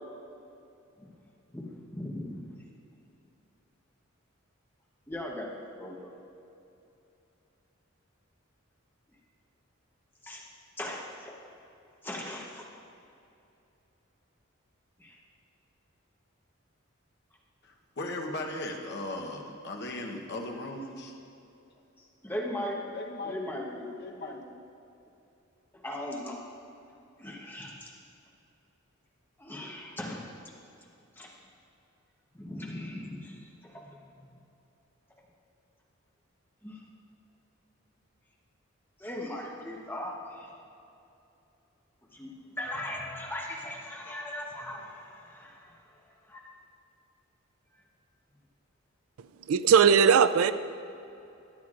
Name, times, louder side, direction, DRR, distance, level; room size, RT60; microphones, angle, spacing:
voice 1, 1.5-2.5 5.1-5.5 5.7-6.1 10.2-10.5 10.8-11.3 12.0-12.7 15.0-15.2 22.2-22.8 23.2-23.9 25.7-26.4 27.2-27.9 29.4-30.3 31.2-31.3 32.3-34.1 36.6-36.8 39.0-40.5 42.1-45.8 46.3-46.4, left 1 dB, 10° left, -2 dB, 1.0 m, -38 dB
voice 2, 17.6-21.1 22.9-23.4 24.0-24.5, left 2 dB, 55° left, 1 dB, 1.0 m, -37 dB
voice 3, 49.5-50.5, right 7 dB, 85° right, 13 dB, 0.4 m, -19 dB
13.5 x 10.5 x 2.5 m, 2.7 s
head